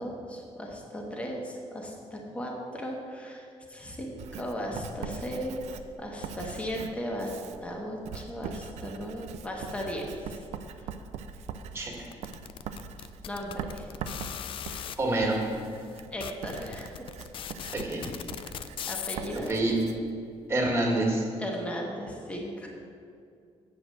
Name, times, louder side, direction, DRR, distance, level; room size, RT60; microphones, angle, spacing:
voice 1, 0.0-7.3 7.6-10.4 10.7-10.8 13.3-13.9 16.1-16.9 18.9-19.5 21.4-22.7, equal, 10° left, -1 dB, 1.2 m, -36 dB
Writing, 4.2-20.8, right 7 dB, 90° right, 0.5 m, -42 dB
sound 1, 12.1-15.0 15.6-15.7 16.0-19.5, left 9 dB, 50° left, 0.4 m, -38 dB
voice 2, 15.0-15.4 17.7-18.1 19.5-19.8 20.5-21.2, right 2 dB, 25° right, -2 dB, 1.8 m, -27 dB
8.2 x 4.9 x 7.5 m, 2.4 s
cardioid pair, 140°, 11 cm